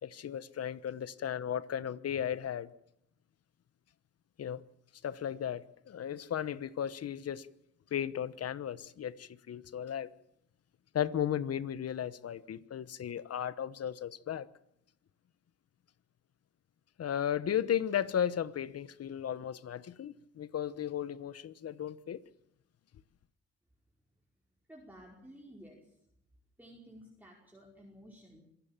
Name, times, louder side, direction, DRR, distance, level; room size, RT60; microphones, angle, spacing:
voice 1, 0.0-2.7 4.4-4.6 5.0-7.5 7.9-10.1 10.9-14.5 17.0-22.2, left 9 dB, 55° left, 1.1 m, -35 dB
voice 2, 24.7-26.0 26.6-28.4, equal, 5° right, 5.1 m, -53 dB
26.0 x 16.0 x 7.4 m
cardioid pair, 90°, 30 cm